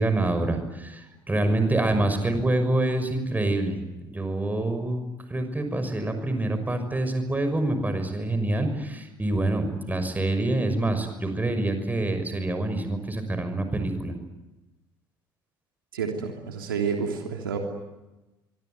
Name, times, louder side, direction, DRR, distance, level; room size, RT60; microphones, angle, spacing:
voice 1, 0.0-3.8 4.1-5.0 5.3-14.1, right 2 dB, 15° right, 8 dB, 6.0 m, -26 dB
voice 2, 15.9-17.6, right 6 dB, 75° right, 2 dB, 3.2 m, -29 dB
25.0 x 25.0 x 9.5 m, 1.0 s
figure-of-eight pair, 55°, 12 cm